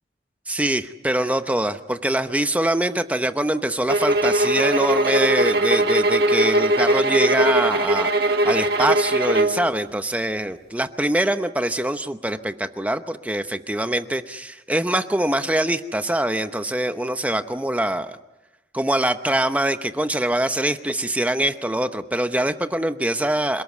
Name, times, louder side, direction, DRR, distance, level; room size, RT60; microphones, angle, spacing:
voice 1, 0.5-18.2 18.7-23.6, right 1 dB, 10° right, 9 dB, 0.8 m, -24 dB
sound 1, 3.9-9.6, right 1 dB, 55° right, 1.5 m, -20 dB
27.0 x 18.5 x 8.3 m, 1.0 s
head